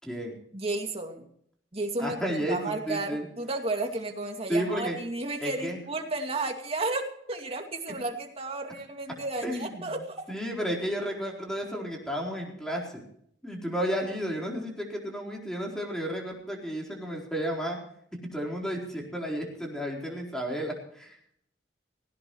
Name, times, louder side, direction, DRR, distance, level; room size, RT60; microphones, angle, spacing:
voice 1, 0.0-0.4 2.0-3.3 4.5-5.0 5.4-5.8 9.4-9.9 10.3-13.0 13.4-17.8 18.3-21.2, equal, 5° left, -1 dB, 4.2 m, -32 dB
voice 2, 0.5-1.2 1.7-10.2, right 2 dB, 35° right, 3 dB, 2.5 m, -33 dB
18.5 x 17.5 x 3.1 m, 0.67 s
head